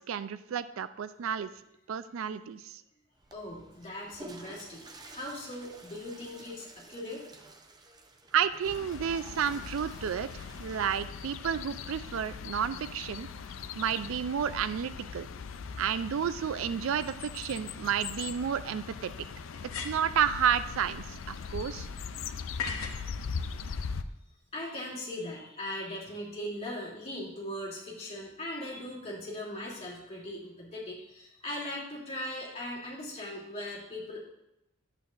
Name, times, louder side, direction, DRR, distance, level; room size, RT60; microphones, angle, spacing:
voice 1, 0.0-1.5 1.9-2.8 8.3-13.3 13.8-15.3 15.8-19.1 19.8-21.9, right 8 dB, 70° right, 14 dB, 0.4 m, -31 dB
Water / Toilet flush, 3.1-11.5, right 2 dB, 20° right, 0.6 m, -52 dB
voice 2, 3.3-7.2 24.5-34.2, left 1 dB, 30° left, -6 dB, 2.7 m, -39 dB
sound 1, 8.7-24.0, left 5 dB, 65° left, 0.4 m, -40 dB
sound 2, 19.5-20.2 22.6-23.1, left 5 dB, 85° left, 1.1 m, -37 dB
11.0 x 8.2 x 2.5 m, 0.84 s
head